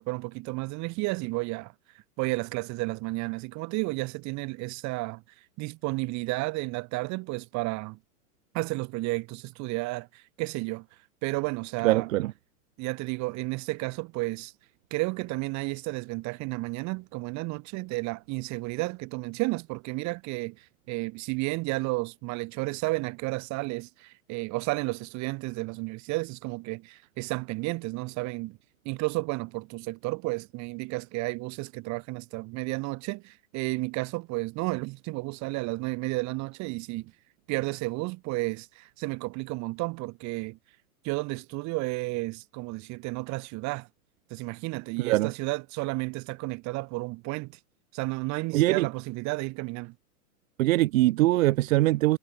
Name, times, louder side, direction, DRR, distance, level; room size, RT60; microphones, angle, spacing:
voice 1, 0.0-1.7 2.2-5.2 5.6-8.0 8.5-10.9 11.2-12.1 12.8-14.5 14.9-28.6 28.8-37.1 37.5-40.6 41.0-43.9 44.3-47.6 47.9-49.9, right 24 dB, 40° right, 3.0 m, -32 dB
voice 2, 11.8-12.3 45.0-45.3 48.5-48.9 50.6-52.2, right 17 dB, 60° right, 2.0 m, -22 dB
hypercardioid pair, 135°, 46 cm